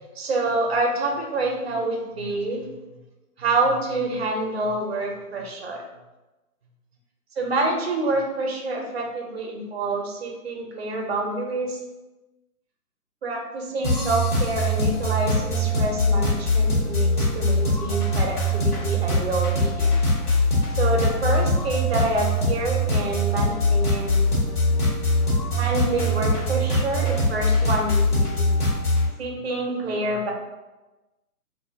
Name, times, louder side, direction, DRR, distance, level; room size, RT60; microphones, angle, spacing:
voice 1, 0.2-2.6 3.4-5.8 7.4-11.8 13.2-19.9 20.8-24.3 25.5-28.5 29.2-30.3, right 2 dB, 45° right, 1 dB, 0.5 m, -27 dB
sound 1, 13.8-29.1, left 1 dB, 80° left, 1.4 m, -22 dB
2.5 x 2.3 x 2.6 m, 1.1 s
figure-of-eight pair, 140°, 46 cm